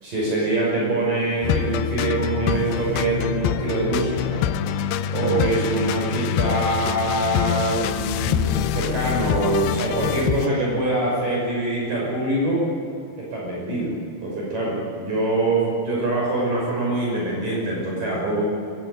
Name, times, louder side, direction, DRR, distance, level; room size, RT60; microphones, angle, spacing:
voice 1, 0.0-4.5 5.1-12.6 13.2-18.4, right 2 dB, 50° right, -3 dB, 7.6 m, -24 dB
sound 1, 1.4-10.5, left 10 dB, 80° left, 2.9 m, -25 dB
25.0 x 24.0 x 9.3 m, 2.5 s
omnidirectional pair, 4.8 m